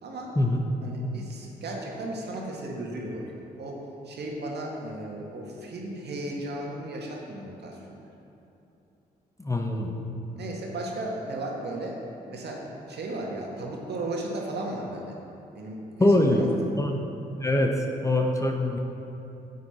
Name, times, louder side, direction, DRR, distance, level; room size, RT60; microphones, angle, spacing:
voice 1, 0.0-0.3 0.8-3.2 3.6-8.0 10.4-12.0 12.3-15.1 15.5-16.5, right 1 dB, 55° right, -1 dB, 1.9 m, -35 dB
voice 2, 9.4-9.9 16.0-16.5 16.7-16.9 17.2-17.7 18.0-18.8, left 1 dB, 15° left, 1 dB, 1.1 m, -23 dB
9.2 x 8.2 x 4.4 m, 3.0 s
hypercardioid pair, 45°, 20 cm